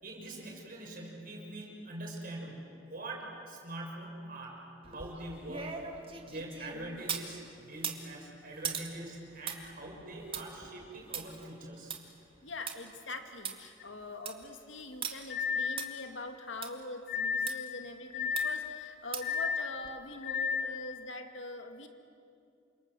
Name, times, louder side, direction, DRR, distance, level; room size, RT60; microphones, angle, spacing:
voice 1, 0.0-4.6 4.8-5.9 6.3-12.0, right 1 dB, 50° right, -1 dB, 6.7 m, -43 dB
sound 1, 4.8-7.3 7.7-12.8 13.1-13.2 13.4-13.5 14.0-14.4 15.0-15.1 15.8-15.9 16.6-16.7 17.5-17.6 18.4-18.7 19.1-19.4 19.8-19.9, right 6 dB, 30° right, 2.2 m, -40 dB
voice 2, 6.7-7.0 12.4-21.9, left 2 dB, 85° left, 6 dB, 2.2 m, -43 dB
sound 2, 13.8-13.9 15.3-15.8 17.1-17.6 18.1-18.7 19.2-19.7 20.2-20.7, left 6 dB, 60° left, 1.8 m, -32 dB
29.0 x 26.5 x 7.7 m, 2.5 s
head